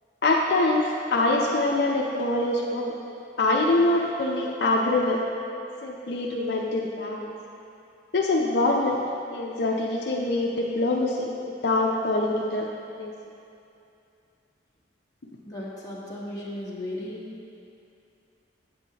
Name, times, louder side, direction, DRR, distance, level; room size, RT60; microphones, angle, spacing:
voice 1, 0.2-2.9 3.4-5.2 5.8-7.3 8.1-9.0 9.3-11.3 11.6-12.7 13.0-13.1, left 2 dB, 65° left, -1 dB, 0.5 m, -24 dB
voice 2, 15.4-17.3, left 1 dB, 20° left, -7 dB, 1.2 m, -35 dB
8.2 x 7.7 x 2.9 m, 2.6 s
head